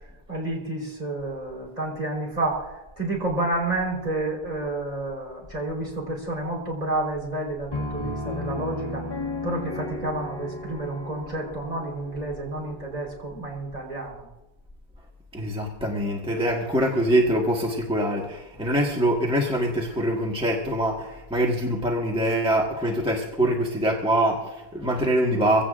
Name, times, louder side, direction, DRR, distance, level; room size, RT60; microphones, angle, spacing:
voice 1, 0.3-2.7 3.0-9.1 9.4-14.3, right 2 dB, 40° right, -2 dB, 4.4 m, -30 dB
Piano, 7.7-13.2, left 2 dB, 25° left, 1.6 m, -34 dB
voice 2, 15.3-25.7, right 1 dB, 5° right, -2 dB, 1.5 m, -24 dB
25.0 x 16.5 x 2.5 m, 0.99 s
omnidirectional pair, 1.0 m